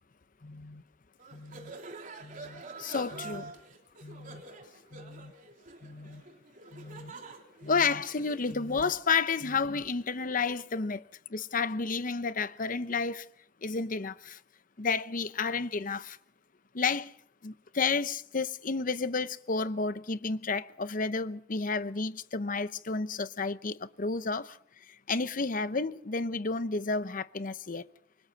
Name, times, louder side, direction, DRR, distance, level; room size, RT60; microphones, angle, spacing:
voice 1, 0.4-0.8 1.3-1.7 2.2-3.5 4.0-4.4 4.9-5.3 5.8-6.2 6.7-7.1 7.6-13.3 13.6-14.4 14.8-16.2 16.7-17.1 17.4-27.9, left 4 dB, 50° left, 0.8 m, -31 dB
sound 1, 1.2-8.7, right 3 dB, 50° right, 3.6 m, -47 dB
28.0 x 24.5 x 4.1 m
head